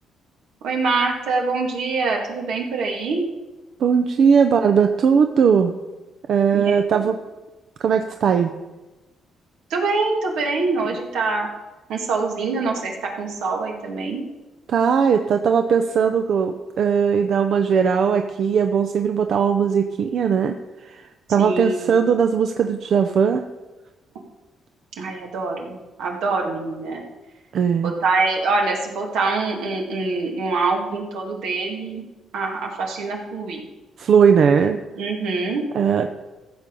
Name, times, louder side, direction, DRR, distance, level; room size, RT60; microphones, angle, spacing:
voice 1, 0.6-3.2 6.5-7.1 9.7-11.5 11.9-14.3 21.4-22.0 25.0-27.0 27.8-32.0 32.3-33.7 35.0-35.6, right 3 dB, 85° right, 0 dB, 2.2 m, -24 dB
voice 2, 3.8-5.7 6.3-7.2 7.8-8.5 14.7-23.4 27.5-27.9 34.0-34.8 35.7-36.1, right 6 dB, 65° right, 6 dB, 0.6 m, -19 dB
15.0 x 6.8 x 5.4 m, 1.1 s
cardioid pair, 90°, 0 cm